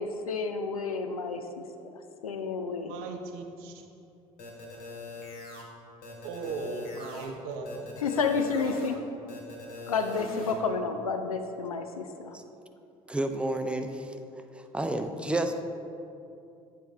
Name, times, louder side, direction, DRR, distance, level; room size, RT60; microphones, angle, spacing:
voice 1, 0.0-1.4 1.8-2.9 8.0-9.0 9.9-12.4, left 4 dB, 90° left, 7 dB, 0.4 m, -30 dB
voice 2, 2.9-3.8 6.2-7.9, right 4 dB, 65° right, 4 dB, 0.7 m, -37 dB
sound 1, 4.4-5.6 6.0-7.3 7.6-8.9 9.3-10.5, left 3 dB, 55° left, 1.3 m, -42 dB
voice 3, 13.1-14.1 14.5-15.5, right 1 dB, 5° right, 6 dB, 0.5 m, -30 dB
8.0 x 3.7 x 4.5 m, 2.7 s
figure-of-eight pair, 60°, 18 cm